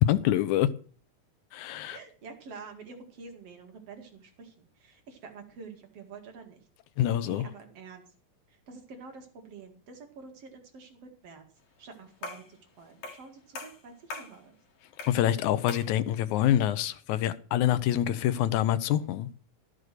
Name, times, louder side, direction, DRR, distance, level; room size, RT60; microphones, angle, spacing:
voice 1, 0.0-0.7 1.5-2.0 7.0-7.4 15.1-19.3, left 12 dB, 80° left, 2.1 m, -26 dB
voice 2, 1.9-6.7 7.0-8.1 8.5-11.4 11.8-14.5, right 4 dB, 55° right, 2.7 m, -48 dB
sound 1, 12.2-12.5 13.0-13.3 13.6-14.4 15.0-15.2 15.7-15.9, left 3 dB, 65° left, 2.9 m, -40 dB
12.5 x 6.4 x 6.5 m
omnidirectional pair, 3.4 m